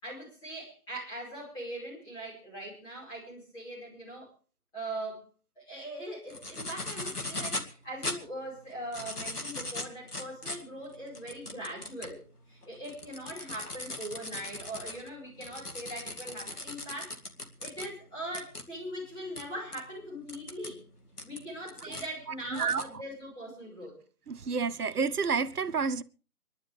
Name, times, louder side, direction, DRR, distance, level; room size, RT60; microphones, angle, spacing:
voice 1, 0.0-4.3 4.7-5.3 5.6-17.2 17.6-20.8 21.2-24.0, right 1 dB, 10° left, 5.3 m, -41 dB
sound 1, 6.3-7.7 8.0-8.2 8.7-12.2 12.6-17.9 18.3-18.6 19.4-19.5 19.7-19.8 20.3-20.7 21.2-22.1 22.5-22.8, left 2 dB, 85° left, 2.2 m, -38 dB
voice 2, 22.5-22.8 24.3-26.0, right 5 dB, 80° right, 0.7 m, -29 dB
26.5 x 11.5 x 3.5 m
figure-of-eight pair, 150°, 45 cm